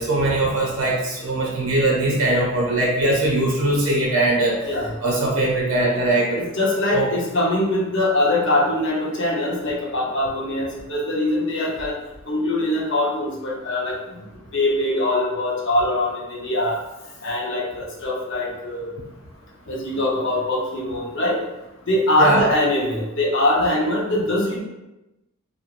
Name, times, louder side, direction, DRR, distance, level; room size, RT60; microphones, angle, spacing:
voice 1, 0.0-4.7 5.0-6.5 6.9-7.1 22.2-22.5, right 2 dB, 85° right, -2 dB, 0.6 m, -21 dB
voice 2, 6.3-11.9 12.3-14.0 14.5-16.8 17.2-18.9 19.7-21.4 21.9-24.6, left 1 dB, 60° left, -3 dB, 0.7 m, -22 dB
2.9 x 2.5 x 2.4 m, 0.97 s
head